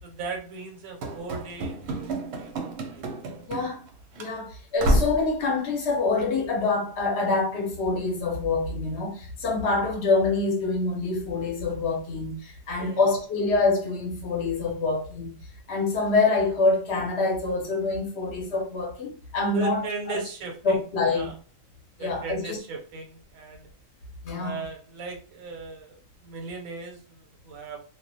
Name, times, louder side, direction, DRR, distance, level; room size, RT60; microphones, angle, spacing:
voice 1, 0.0-2.5 2.9-3.0 12.8-13.0 19.5-20.8 21.0-21.4 22.0-23.7 24.4-27.8, right 4 dB, 90° right, 1.0 m, -37 dB
Run / Slam, 1.0-3.9 4.2-4.3 4.8-5.3, right 1 dB, 65° right, 0.7 m, -28 dB
voice 2, 3.5-3.8 4.2-15.3 15.7-20.2 20.6-21.3 22.0-22.6 24.2-24.6, left 3 dB, 60° left, 0.8 m, -26 dB
2.4 x 2.0 x 2.6 m
omnidirectional pair, 1.4 m